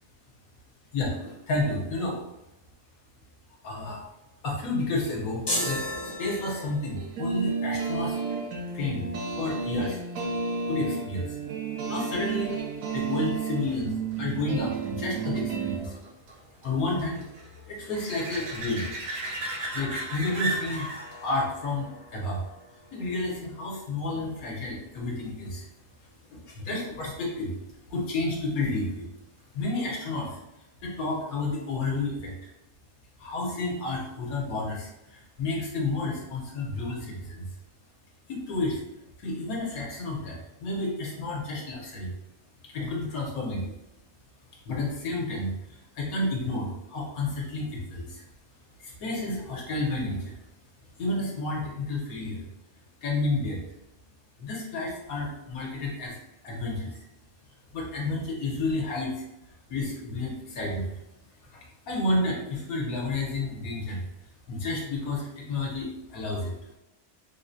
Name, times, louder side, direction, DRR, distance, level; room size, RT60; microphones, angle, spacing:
voice 1, 0.9-2.2 3.6-4.0 4.4-8.2 8.7-9.1 9.4-10.0 10.7-11.4 11.8-12.6 12.9-13.9 14.2-16.0 16.6-17.2 17.7-18.9 19.7-20.9 21.2-22.4 22.9-25.7 26.5-27.5 27.9-29.1 29.5-32.3 33.2-37.5 38.3-38.8 39.2-42.1 42.6-43.7 44.6-48.2 48.8-50.4 51.0-52.5 53.0-53.6 54.4-56.2 56.4-57.1 57.7-59.2 59.7-60.9 61.5-64.0 64.5-66.5, left 2 dB, 70° left, -3 dB, 1.2 m, -31 dB
sound 1, 5.5-7.0, left 1 dB, 40° left, 0.3 m, -31 dB
sound 2, 7.0-15.8, right 5 dB, 85° right, 1.1 m, -32 dB
sound 3, 12.3-23.6 29.2-29.3, right 1 dB, 65° right, 0.9 m, -38 dB
3.7 x 2.1 x 2.6 m, 0.93 s
omnidirectional pair, 1.6 m